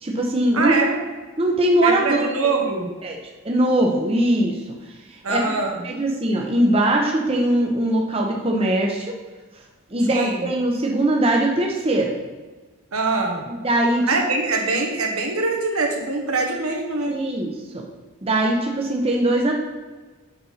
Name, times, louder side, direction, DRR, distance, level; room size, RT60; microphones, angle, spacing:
voice 1, 0.0-0.8 1.4-2.2 3.0-3.2 3.4-4.6 5.3-5.4 5.8-9.2 9.9-12.1 13.5-14.1 17.1-17.8 18.2-19.5, right 1 dB, 25° right, 0 dB, 0.8 m, -21 dB
voice 2, 0.5-1.0 1.8-2.9 5.2-5.8 10.1-10.4 12.9-13.4 14.1-17.2, right 3 dB, 85° right, 1 dB, 1.3 m, -23 dB
6.8 x 4.3 x 5.7 m, 1.3 s
head